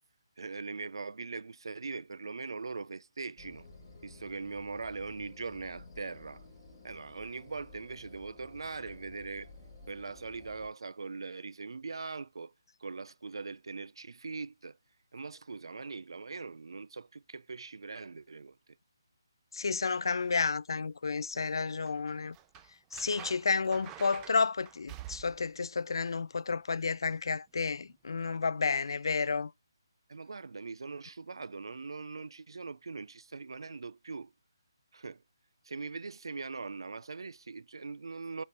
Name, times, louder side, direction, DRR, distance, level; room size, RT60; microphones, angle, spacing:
voice 1, 0.4-3.7 4.0-6.4 6.8-9.5 9.9-12.5 12.8-14.8 15.1-18.6 30.1-34.3 34.9-35.2 35.6-38.4, right 4 dB, 80° right, 0.5 m, -41 dB
sound 1, 3.4-10.7, left 2 dB, 25° left, 4.9 m, -53 dB
voice 2, 19.5-22.4 22.9-29.5, left 4 dB, 70° left, 0.4 m, -31 dB
sound 2, 21.9-25.5 27.8-27.9, right 12 dB, 15° right, 0.4 m, -48 dB
8.6 x 4.4 x 3.8 m
hypercardioid pair, 165°, 2 cm